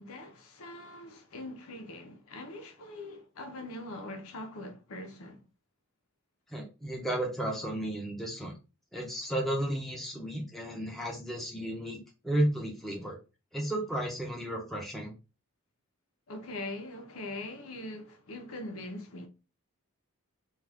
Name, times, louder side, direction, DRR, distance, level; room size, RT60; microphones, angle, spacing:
voice 1, 0.0-5.4 16.3-19.3, left 2 dB, 85° left, 0.7 m, -42 dB
voice 2, 6.5-8.6 8.9-13.2 13.5-15.1, right 1 dB, ahead, 0.6 m, -33 dB
2.4 x 2.4 x 3.4 m
head